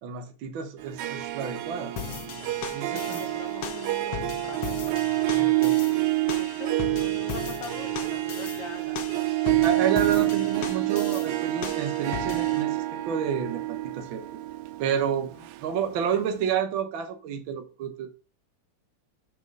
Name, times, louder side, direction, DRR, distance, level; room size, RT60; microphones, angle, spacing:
voice 1, 0.0-1.9 2.7-3.2 5.3-5.8 8.9-14.4 14.8-15.3 15.6-18.2, right 8 dB, 60° right, 1.3 m, -30 dB
Harp, 0.8-16.1, right 17 dB, 80° right, 1.9 m, -28 dB
sound 1, 2.0-12.6, left 9 dB, 65° left, 1.5 m, -38 dB
voice 2, 2.8-4.8 5.3-9.6 10.4-10.5 15.3-15.5, left 7 dB, 85° left, 1.2 m, -44 dB
6.1 x 5.4 x 5.3 m
omnidirectional pair, 3.5 m